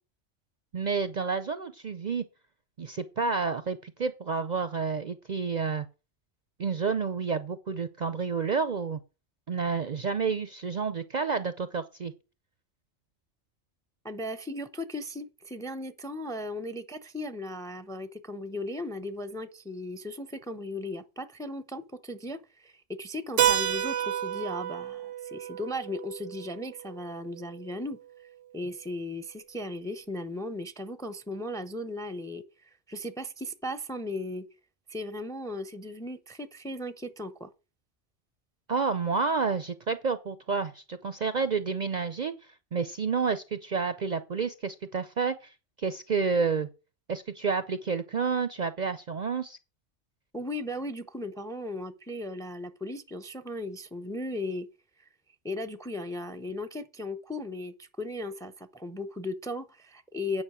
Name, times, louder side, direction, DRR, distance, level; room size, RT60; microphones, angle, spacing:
voice 1, 0.7-2.2 2.8-5.9 6.6-9.0 9.5-12.1 38.7-42.3 42.7-45.3 45.8-46.7 47.1-49.6, right 5 dB, 50° right, 0.6 m, -29 dB
voice 2, 14.0-28.0 28.5-34.5 34.9-37.5 50.3-54.7 55.4-60.4, left 1 dB, 5° left, 0.6 m, -37 dB
Keyboard (musical), 23.4-27.8, right 10 dB, 85° right, 1.0 m, -30 dB
9.7 x 5.3 x 6.2 m
omnidirectional pair, 1.2 m